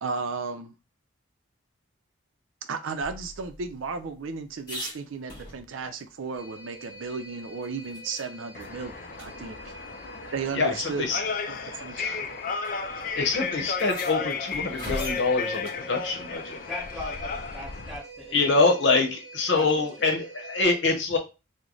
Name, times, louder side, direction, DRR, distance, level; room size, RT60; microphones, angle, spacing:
voice 1, 0.0-0.7 2.6-9.7 10.3-12.2, right 5 dB, 80° right, 0.5 m, -34 dB
sound 1, 3.0-6.0 6.4-6.5 6.8-8.3 8.6-8.7 9.1-9.3 10.3-10.4 11.3-11.6 12.6-12.7 13.0-13.1 13.7-15.9 18.1-18.6, left 1 dB, 20° left, 1.3 m, -41 dB
sound 2, 6.4-20.6, right 1 dB, 50° right, 0.9 m, -47 dB
sound 3, 8.5-18.0, left 5 dB, 45° left, 0.3 m, -34 dB
voice 2, 10.5-11.2 11.9-12.2 13.1-16.6 18.3-21.2, left 3 dB, 65° left, 0.8 m, -25 dB
voice 3, 16.7-18.6 19.5-20.1, equal, ahead, 0.9 m, -42 dB
3.1 x 2.1 x 3.8 m
head